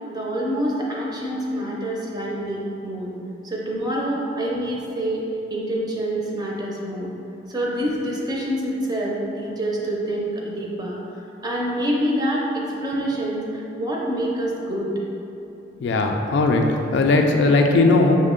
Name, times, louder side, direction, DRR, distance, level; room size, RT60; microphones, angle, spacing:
voice 1, 0.0-3.1 3.4-5.2 5.5-7.1 7.5-11.0 11.4-14.9, right 1 dB, 25° right, -4 dB, 0.5 m, -26 dB
voice 2, 15.8-18.1, left 3 dB, 70° left, 3 dB, 0.3 m, -18 dB
6.2 x 2.1 x 3.7 m, 3.0 s
head